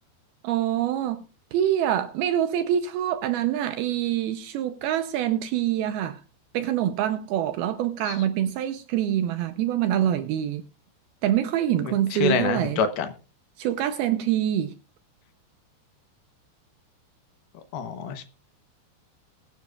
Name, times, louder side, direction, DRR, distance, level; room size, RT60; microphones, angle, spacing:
voice 1, 0.4-1.2 1.5-6.2 6.5-10.6 11.2-12.8 13.6-14.7, right 11 dB, 80° right, 2.3 m, -25 dB
voice 2, 11.8-13.1 17.7-18.2, left 6 dB, 75° left, 2.6 m, -27 dB
21.5 x 10.0 x 2.4 m
omnidirectional pair, 5.0 m